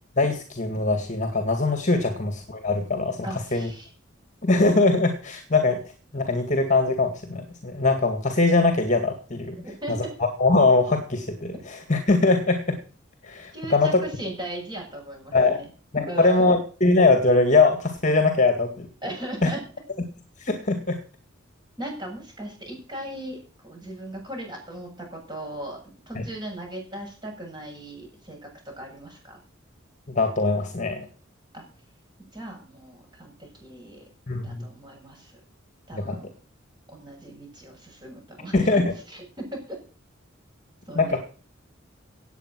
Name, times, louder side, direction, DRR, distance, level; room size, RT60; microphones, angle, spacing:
voice 1, 0.2-3.2 3.5-3.7 4.4-5.8 6.1-9.6 9.9-10.0 10.4-12.6 13.2-14.0 15.3-15.6 15.9-18.9 19.4-19.5 20.4-21.0 26.2-26.3 30.1-31.1 34.3-34.7 35.9-36.2 38.5-38.8 41.0-41.2, left 3 dB, 40° left, 6 dB, 2.1 m, -22 dB
voice 2, 3.2-3.9 9.6-10.1 13.5-15.7 16.0-16.6 19.0-19.6 21.8-25.8 26.1-29.4 31.5-31.7 32.3-34.0 34.4-35.3 35.9-36.3 36.9-38.7 39.1-39.8 40.9-41.2, right 1 dB, 20° right, 1 dB, 7.5 m, -38 dB
18.0 x 8.5 x 6.3 m, 0.39 s
head